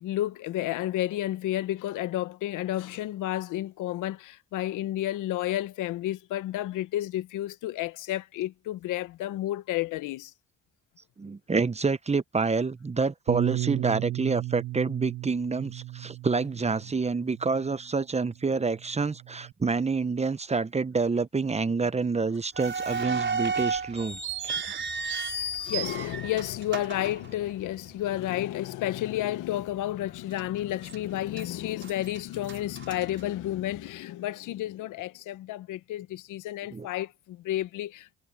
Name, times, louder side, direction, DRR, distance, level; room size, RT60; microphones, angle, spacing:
voice 1, 0.0-10.3 24.5-24.6 25.7-38.1, left 14 dB, 90° left, 1.0 m, -31 dB
voice 2, 11.2-24.8 36.7-36.9, right 4 dB, 20° right, 0.9 m, -28 dB
Bass guitar, 13.3-17.8 18.6-19.5, right 15 dB, 70° right, 2.0 m, -34 dB
sound 1, 22.5-27.9 28.2-28.3 29.0-29.2 29.7-29.8 30.4-31.0 31.3-33.8, right 4 dB, 40° right, 4.3 m, -33 dB
cardioid pair, 90°, 30 cm